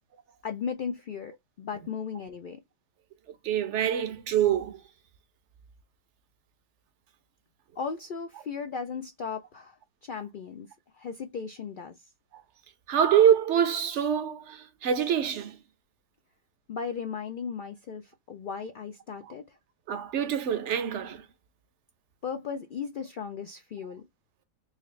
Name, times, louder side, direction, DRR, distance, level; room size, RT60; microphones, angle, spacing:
voice 1, 0.4-2.6 7.8-10.7 10.9-12.0 16.7-19.6 22.2-24.0, left 6 dB, 65° left, 0.5 m, -36 dB
voice 2, 3.4-4.8 12.9-15.6 19.9-21.2, right 9 dB, 65° right, 1.0 m, -25 dB
4.1 x 2.5 x 3.1 m
omnidirectional pair, 1.4 m